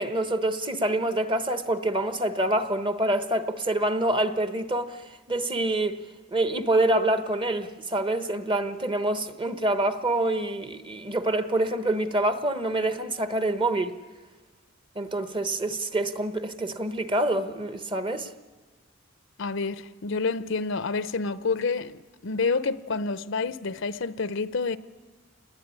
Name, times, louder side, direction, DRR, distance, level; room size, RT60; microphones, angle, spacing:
voice 1, 0.0-5.0 5.3-6.0 6.3-13.9 14.9-18.3, right 1 dB, 25° right, 1.1 m, -26 dB
voice 2, 19.4-24.8, left 4 dB, 70° left, 0.7 m, -28 dB
27.5 x 20.5 x 9.9 m
head